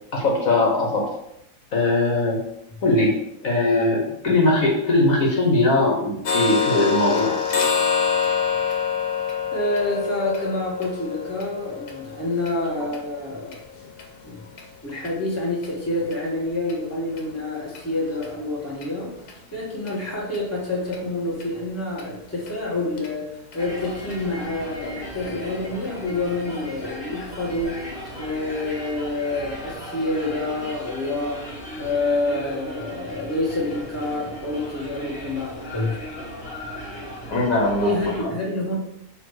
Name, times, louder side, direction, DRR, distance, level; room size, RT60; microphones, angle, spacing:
voice 1, 0.1-1.1 1.7-2.4 2.8-3.2 3.4-7.3 37.3-37.9, left 2 dB, 60° left, -1 dB, 1.5 m, -20 dB
sound 1, 6.3-14.1 14.5-14.6 15.1-15.2 15.6-15.7 16.1-16.2 16.7-16.8 17.2-17.3 17.7-17.8 18.2-18.3 18.8-18.9 19.3-19.4 19.9-20.0 20.3-20.4 20.9-21.0 21.4-21.5 22.0-22.1 22.5-22.6 23.0-23.1 23.5-23.6 24.1-24.2, left 6 dB, 80° left, 1.5 m, -26 dB
voice 2, 9.5-13.6 14.2-14.4 14.8-19.1 19.5-27.8 28.2-31.5 31.8-36.0 37.8-38.8, left 2 dB, 10° left, -4 dB, 1.4 m, -27 dB
sound 2, 23.6-38.2, equal, 35° left, 1.4 m, -37 dB
6.3 x 3.2 x 4.8 m, 0.81 s
omnidirectional pair, 1.7 m